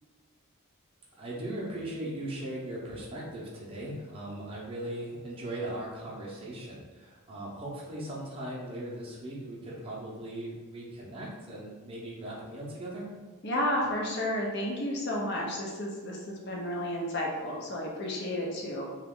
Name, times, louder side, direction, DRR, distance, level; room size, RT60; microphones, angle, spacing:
voice 1, 1.2-13.1, right 1 dB, 25° right, -5 dB, 0.6 m, -38 dB
voice 2, 13.4-18.9, left 1 dB, 50° left, -2 dB, 0.6 m, -32 dB
2.9 x 2.3 x 3.6 m, 1.4 s
head